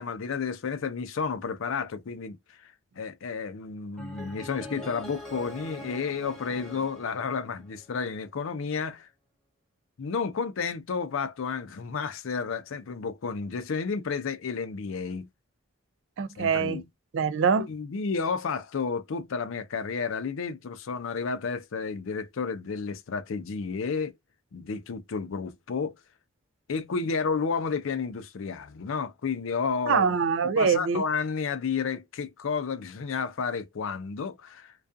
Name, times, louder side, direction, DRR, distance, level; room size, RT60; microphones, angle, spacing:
voice 1, 0.0-2.4 2.6-9.1 10.0-15.3 16.4-16.8 17.7-24.1 24.5-25.9 26.7-30.1 30.5-34.7, left 5 dB, 70° left, 0.4 m, -31 dB
sound 1, 4.0-8.0, left 1 dB, 5° left, 0.8 m, -43 dB
voice 2, 16.2-16.8 17.1-17.7 29.9-31.0, right 6 dB, 60° right, 0.3 m, -24 dB
2.3 x 2.3 x 2.5 m
head